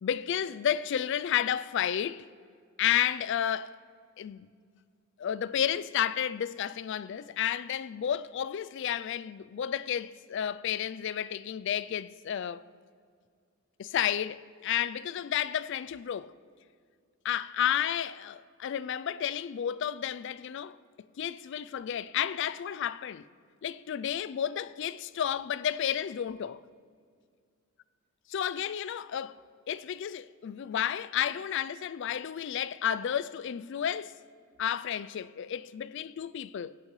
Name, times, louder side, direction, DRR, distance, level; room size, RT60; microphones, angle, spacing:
voice 1, 0.0-2.3 2.8-3.7 4.2-4.5 5.2-12.6 13.8-16.3 17.2-20.8 21.2-23.3 23.6-26.6 28.3-29.4 29.7-34.2 34.6-36.8, left 9 dB, 55° left, 0.3 m, -31 dB
17.0 x 10.5 x 3.2 m
head